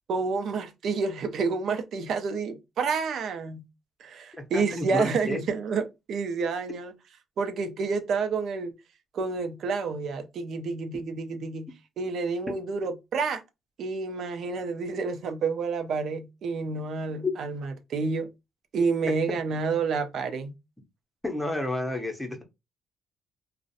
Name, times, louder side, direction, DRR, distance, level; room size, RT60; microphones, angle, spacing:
voice 1, 0.1-3.6 4.0-6.9 7.4-8.7 9.1-11.7 12.0-13.4 13.8-18.3 18.7-20.5, right 4 dB, 70° right, 0.4 m, -29 dB
voice 2, 4.4-5.4 17.2-17.3 21.2-22.4, left 2 dB, 10° left, 0.6 m, -30 dB
2.4 x 2.0 x 2.6 m
cardioid pair, 90°, 0 cm